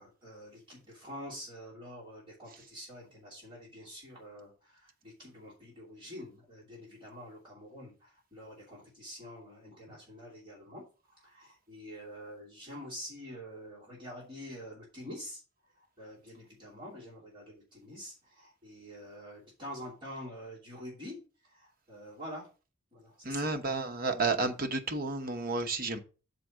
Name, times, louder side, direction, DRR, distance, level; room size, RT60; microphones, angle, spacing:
voice 1, 0.0-15.4 16.0-22.5 22.9-23.5, equal, 20° right, 2.9 m, -47 dB
voice 2, 23.2-26.0, right 3 dB, 40° right, 0.9 m, -31 dB
6.8 x 4.5 x 6.2 m
head